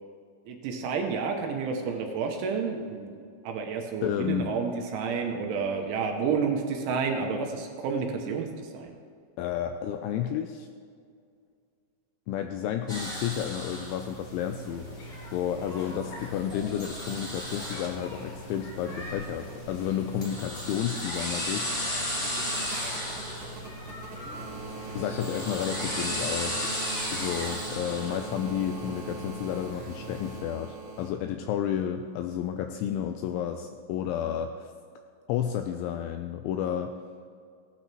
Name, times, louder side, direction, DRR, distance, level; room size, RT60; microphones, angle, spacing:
voice 1, 0.5-3.1 3.4-8.9, right 5 dB, 80° right, 3 dB, 3.3 m, -30 dB
voice 2, 4.0-4.5 9.4-10.7 12.3-14.9 15.3-22.2 24.9-26.7 27.1-34.7 35.3-36.9, left 9 dB, 85° left, 6 dB, 2.7 m, -31 dB
sound 1, 12.9-30.4, equal, 20° left, 1.8 m, -36 dB
sound 2, 14.6-26.3, left 1 dB, 55° left, 4.6 m, -44 dB
sound 3, 21.7-31.1 32.5-32.6, right 5 dB, 55° right, 2.3 m, -42 dB
16.5 x 12.0 x 3.0 m, 2.2 s
omnidirectional pair, 5.8 m